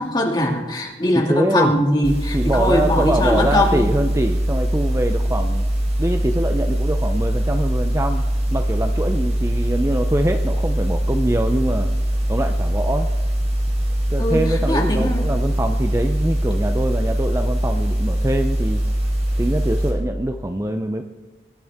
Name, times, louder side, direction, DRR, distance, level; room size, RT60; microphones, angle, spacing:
voice 1, 0.0-3.8 14.2-15.3, left 1 dB, 25° left, -1 dB, 2.3 m, -21 dB
voice 2, 1.2-1.7 2.3-5.7 6.0-8.3 8.5-11.9 12.3-13.1 14.1-18.8 19.4-21.0, right 1 dB, 15° right, 6 dB, 0.5 m, -23 dB
sound 1, 2.0-19.9, right 1 dB, 40° right, 3.6 m, -22 dB
24.5 x 11.0 x 3.6 m, 1.2 s
head